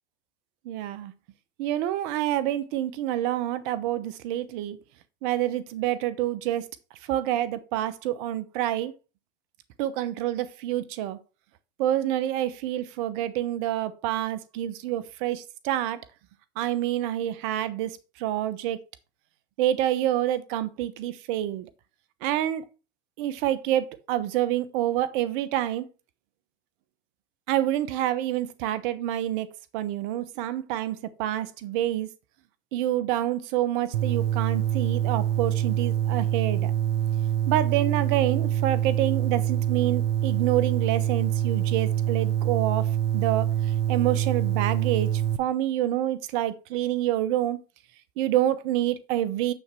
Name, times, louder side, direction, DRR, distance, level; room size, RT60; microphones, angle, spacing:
voice 1, 0.7-1.1 1.6-4.8 5.2-6.7 7.1-8.9 9.8-11.2 11.8-16.0 16.6-18.8 19.6-21.7 22.2-22.6 23.2-25.8 27.5-29.5 29.7-32.1 32.7-36.7 37.5-43.5 43.9-47.6 48.2-49.5, right 12 dB, 60° right, 1.0 m, -27 dB
sound 1, 33.9-45.4, right 11 dB, 75° right, 0.5 m, -25 dB
7.2 x 6.7 x 4.5 m
hypercardioid pair, 90°, 29 cm